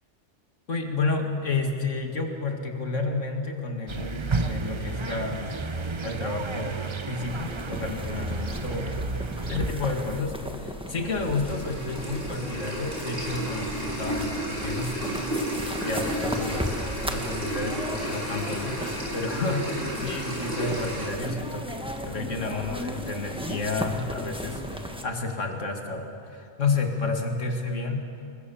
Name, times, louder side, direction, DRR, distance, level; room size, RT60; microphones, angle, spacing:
voice 1, 0.7-5.6 6.0-6.8 7.1-9.1 9.5-13.7 14.0-15.3 15.8-16.7 17.0-28.1, left 3 dB, 85° left, 3 dB, 2.4 m, -31 dB
sound 1, 3.9-10.2, right 3 dB, 30° right, 0.7 m, -32 dB
sound 2, 7.2-25.0, equal, 5° right, 1.5 m, -36 dB
sound 3, 11.1-21.1, right 1 dB, 50° right, 5.3 m, -32 dB
29.5 x 21.5 x 7.1 m, 2.5 s
omnidirectional pair, 1.3 m